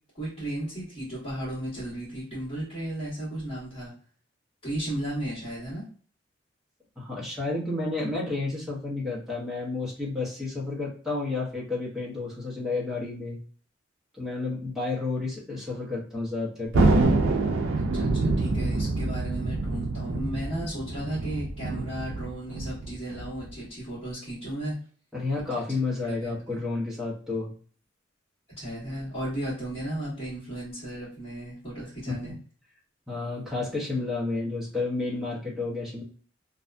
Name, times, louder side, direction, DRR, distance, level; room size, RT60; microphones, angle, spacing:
voice 1, 0.1-3.9 4.6-5.9 17.7-24.7 26.0-26.4 28.6-32.3, right 1 dB, 30° left, -13 dB, 1.4 m, -35 dB
voice 2, 7.0-13.4 14.2-17.1 25.1-27.5 32.1-32.4 33.1-36.0, left 3 dB, ahead, -6 dB, 0.9 m, -31 dB
Thunder, 16.7-23.6, right 2 dB, 90° right, 0.4 m, -26 dB
2.7 x 2.2 x 2.5 m, 0.43 s
head